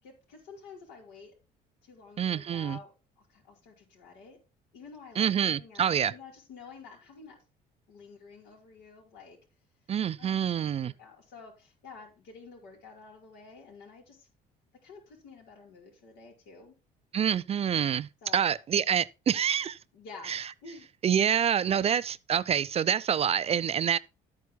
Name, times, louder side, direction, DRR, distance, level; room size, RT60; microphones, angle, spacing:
voice 1, 0.0-1.3 1.8-4.4 4.7-7.4 7.9-9.4 10.2-14.3 14.8-16.7 18.2-18.5 19.9-20.3 20.6-20.9, left 4 dB, 90° left, 5.0 m, -50 dB
voice 2, 2.2-2.8 5.2-6.1 9.9-10.9 17.1-19.8 20.3-20.4 21.0-24.0, right 8 dB, 35° right, 0.5 m, -27 dB
12.5 x 9.4 x 2.2 m
cardioid pair, 110°, 17 cm